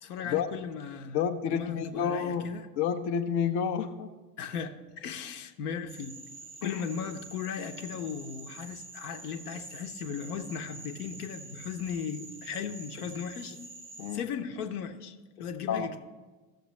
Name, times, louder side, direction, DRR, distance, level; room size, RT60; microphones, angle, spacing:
voice 1, 0.0-2.7 4.4-6.2 6.6-13.6 14.0-16.0, left 7 dB, 65° left, 8 dB, 0.9 m, -37 dB
voice 2, 1.1-2.4 2.8-4.1 6.6-6.8 14.0-14.2 15.7-15.9, left 7 dB, 35° left, 6 dB, 0.6 m, -29 dB
Frog, 5.9-14.2, right 3 dB, 10° right, 0.6 m, -47 dB
14.0 x 6.6 x 3.1 m, 1.3 s
figure-of-eight pair, 85°, 49 cm